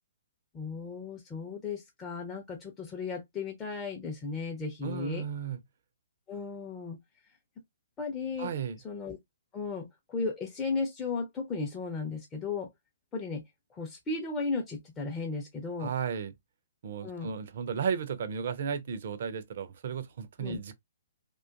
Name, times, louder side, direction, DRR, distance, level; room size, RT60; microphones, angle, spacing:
voice 1, 0.5-5.2 6.3-7.0 8.0-8.5 8.8-9.2 9.5-12.7 13.1-13.4 13.7-15.9 17.0-17.3 20.4-20.6, left 4 dB, 15° left, 0.5 m, -35 dB
voice 2, 4.8-5.6 8.4-8.8 15.8-16.3 16.8-20.7, right 7 dB, 50° right, 0.4 m, -34 dB
2.4 x 2.2 x 2.4 m
figure-of-eight pair, 125°, 0 cm